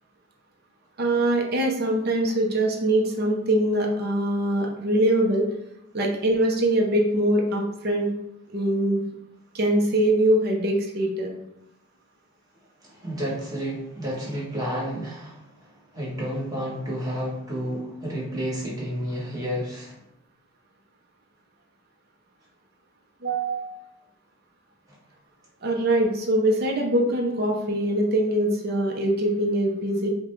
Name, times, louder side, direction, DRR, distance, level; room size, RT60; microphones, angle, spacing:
voice 1, 1.0-5.4 5.9-8.1 8.5-9.0 9.5-11.3 23.2-23.9 25.6-30.1, right 1 dB, 50° right, 0 dB, 0.6 m, -23 dB
voice 2, 12.8-20.0 24.9-25.0, equal, 15° right, -5 dB, 1.1 m, -31 dB
5.0 x 2.1 x 3.1 m, 0.81 s
head